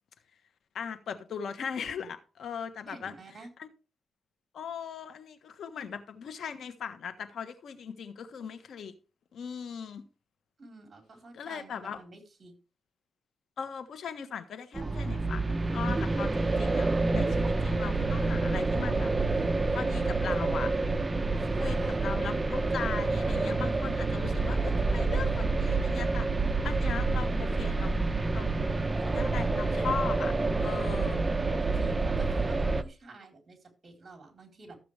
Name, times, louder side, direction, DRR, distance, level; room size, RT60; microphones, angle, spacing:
voice 1, 0.7-3.1 3.6-3.7 4.5-8.9 9.3-10.0 11.3-12.0 13.6-16.9 17.1-19.4 19.7-20.7 21.6-26.3 26.6-28.5 29.0-30.3 30.6-31.2, left 7 dB, 75° left, 1.3 m, -39 dB
voice 2, 2.9-3.5 10.6-12.6 21.4-22.1 31.4-34.8, right 3 dB, 40° right, 4.2 m, -50 dB
sound 1, 14.7-32.8, right 3 dB, 20° right, 0.8 m, -28 dB
14.0 x 7.7 x 3.4 m
cardioid pair, 80°, 0 cm